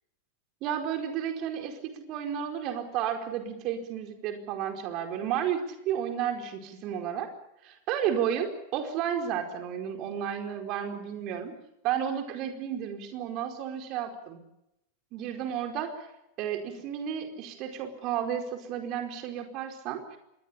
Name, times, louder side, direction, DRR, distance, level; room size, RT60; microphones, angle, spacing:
voice 1, 0.6-1.8 2.1-7.3 7.6-11.5 11.8-14.4 15.1-16.1 16.4-20.2, right 9 dB, 40° right, 5 dB, 4.7 m, -32 dB
26.0 x 21.5 x 7.0 m, 0.85 s
figure-of-eight pair, 90°, 0 cm